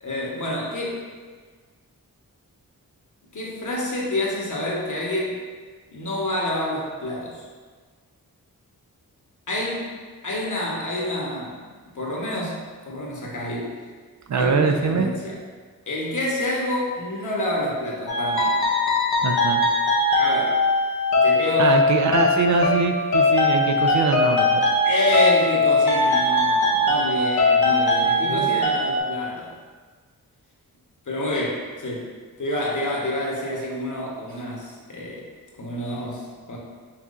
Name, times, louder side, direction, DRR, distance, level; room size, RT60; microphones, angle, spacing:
voice 1, 0.0-1.0 3.3-5.4 5.9-7.4 9.5-9.9 10.2-11.6 11.9-13.7 14.3-15.4 15.9-18.5 20.1-20.6 21.1-21.7 24.8-29.5 31.1-32.1 32.4-35.3 35.6-36.6, left 1 dB, 55° left, -3 dB, 1.1 m, -28 dB
voice 2, 14.3-15.1 19.2-19.6 21.6-24.6 28.0-28.5, right 4 dB, 55° right, 5 dB, 0.4 m, -23 dB
sound 1, 18.1-29.0, left 2 dB, 85° left, 0.8 m, -20 dB
5.8 x 3.0 x 2.5 m, 1.5 s
cardioid pair, 55°, 36 cm